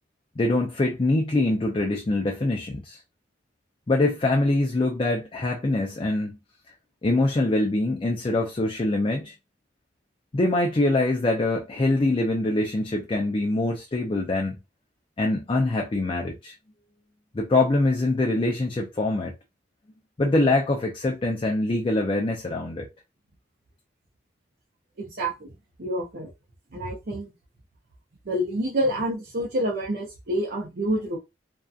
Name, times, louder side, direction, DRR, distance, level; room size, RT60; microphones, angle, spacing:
voice 1, 0.4-3.0 3.9-6.4 7.0-9.3 10.3-14.6 15.2-16.5 17.3-19.3 20.2-22.9, left 2 dB, 30° left, 0.4 m, -24 dB
voice 2, 25.0-25.5 25.8-26.3 26.7-27.3 28.3-31.2, equal, 60° right, 0.6 m, -28 dB
2.6 x 2.2 x 2.3 m
head